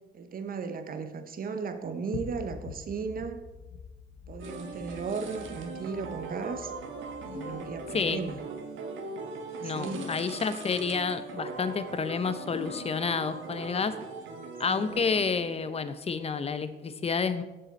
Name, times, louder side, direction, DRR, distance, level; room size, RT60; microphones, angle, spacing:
voice 1, 0.1-3.4 4.3-6.7 7.2-8.4 9.6-10.1 14.7-15.0, right 5 dB, 45° right, 8 dB, 0.9 m, -36 dB
sound 1, 2.1-8.5, left 6 dB, 85° left, 0.8 m, -46 dB
sound 2, 4.4-15.2, right 3 dB, 75° right, 1.2 m, -40 dB
sound 3, 7.2-8.4 9.8-11.0 12.5-13.5 14.9-15.9, left 7 dB, 70° left, 1.2 m, -45 dB
voice 2, 9.6-14.0 14.6-17.4, left 5 dB, 30° left, 12 dB, 0.7 m, -29 dB
7.6 x 6.7 x 4.1 m, 1.1 s
cardioid pair, 90°, 20 cm